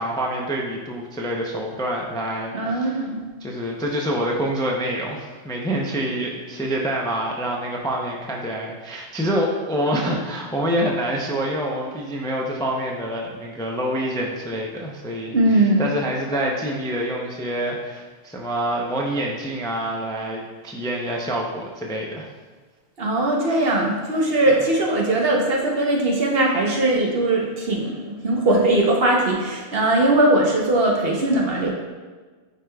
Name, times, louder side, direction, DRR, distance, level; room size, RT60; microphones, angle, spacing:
voice 1, 0.0-3.0 3.4-22.3 24.5-24.6, right 1 dB, 5° left, -1 dB, 0.5 m, -26 dB
voice 2, 2.5-3.2 15.3-15.9 23.0-31.7, right 2 dB, 55° right, -1 dB, 1.1 m, -20 dB
9.2 x 4.9 x 2.3 m, 1.4 s
omnidirectional pair, 1.2 m